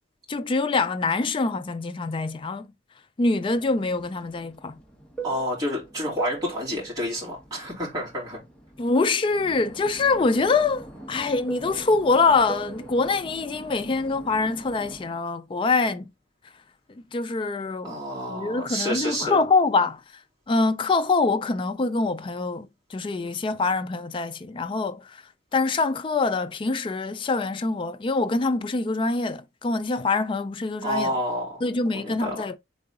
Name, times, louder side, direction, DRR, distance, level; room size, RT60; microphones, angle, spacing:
voice 1, 0.3-2.7 3.2-4.8 8.8-16.1 16.9-18.0 18.3-20.0 20.5-25.2 25.5-31.1 31.6-32.6, left 3 dB, 25° left, 0.3 m, -24 dB
Fixed-wing aircraft airplane, 3.6-8.9 9.3-15.1, right 4 dB, 5° left, 0.8 m, -41 dB
voice 2, 5.2-8.4 17.8-19.4 30.8-31.6 31.9-32.4, equal, 20° right, 2.6 m, -29 dB
3.8 x 3.7 x 3.5 m
head